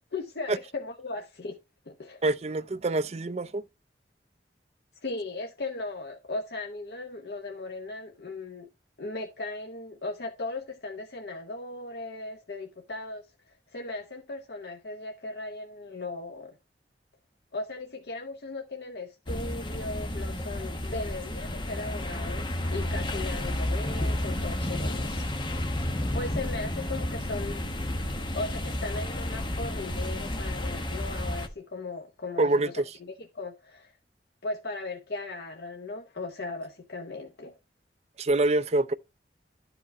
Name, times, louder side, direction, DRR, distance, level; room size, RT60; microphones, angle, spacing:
voice 1, 0.1-1.6 1.9-2.2 5.0-8.7 9.0-16.6 17.5-25.3 26.1-27.7 28.3-32.7 33.0-33.9 34.4-37.6, left 2 dB, 65° left, 0.9 m, -37 dB
voice 2, 2.2-3.6 32.4-32.8 38.2-38.9, right 2 dB, 35° right, 0.5 m, -25 dB
sound 1, 19.3-31.5, left 1 dB, 25° left, 1.0 m, -31 dB
12.0 x 5.0 x 3.1 m
head